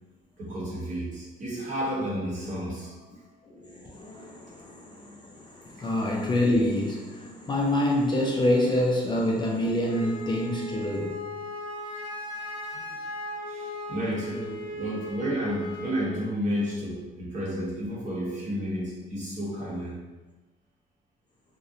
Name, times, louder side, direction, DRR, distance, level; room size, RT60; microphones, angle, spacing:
voice 1, 0.4-3.0 5.8-5.9 12.7-12.9 13.5-20.0, equal, 45° right, 0.8 m, -31 dB
voice 2, 3.5-11.2, left 1 dB, 25° left, 0.4 m, -27 dB
Wind instrument woodwind instrument, 9.9-16.1, left 1 dB, 55° left, 0.7 m, -37 dB
2.7 x 2.0 x 2.4 m
cardioid pair, 105°, 18 cm